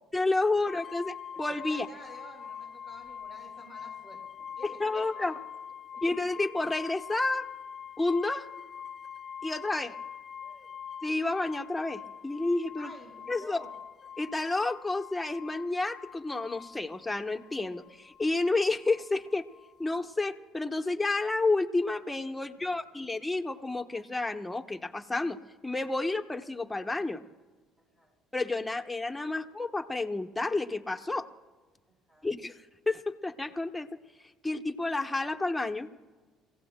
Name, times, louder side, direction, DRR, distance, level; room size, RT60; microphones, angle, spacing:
voice 1, 0.1-1.9 4.8-5.3 6.0-7.5 8.0-8.5 9.4-10.0 11.0-12.9 13.3-13.6 14.2-19.5 19.8-25.4 25.6-27.2 28.3-31.3 32.2-32.6 32.9-33.9 34.4-35.9, left 2 dB, 10° left, 5 dB, 1.0 m, -30 dB
sound 1, 0.7-20.1, left 8 dB, 45° left, 0.4 m, -44 dB
voice 2, 1.3-5.3 5.9-6.0 10.4-10.8 12.8-13.8 22.4-22.9 27.8-28.1 31.9-32.3, equal, 35° right, 2 dB, 4.8 m, -52 dB
30.0 x 16.0 x 2.2 m, 1.3 s
supercardioid pair, 70°, 0 cm